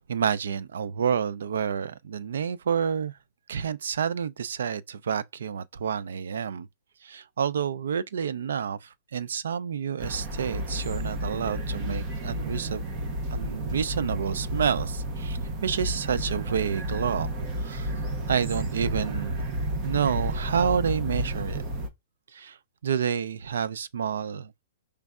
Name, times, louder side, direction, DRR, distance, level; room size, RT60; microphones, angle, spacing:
voice 1, 0.0-3.2 3.5-6.7 7.0-12.8 13.3-17.9 18.3-19.4 19.8-21.6 22.3-22.6 22.8-24.5, right 7 dB, 80° right, 0.4 m, -29 dB
sound 1, 10.0-21.9, right 1 dB, 20° right, 0.8 m, -31 dB
5.2 x 3.3 x 2.4 m
hypercardioid pair, 175°, 0 cm